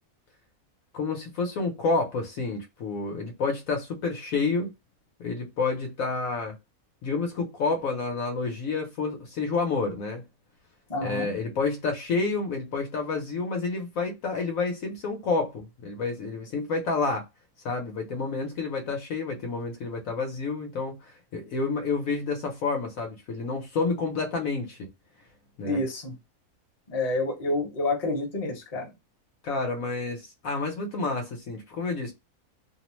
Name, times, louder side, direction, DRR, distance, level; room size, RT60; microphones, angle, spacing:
voice 1, 0.9-4.7 5.2-6.6 7.0-10.2 11.0-17.3 17.6-24.9 25.6-25.8 29.4-32.1, left 4 dB, 65° left, 1.1 m, -29 dB
voice 2, 10.9-11.3 25.6-26.1 26.9-28.9, left 2 dB, 30° left, 0.9 m, -28 dB
2.8 x 2.0 x 3.0 m
omnidirectional pair, 1.6 m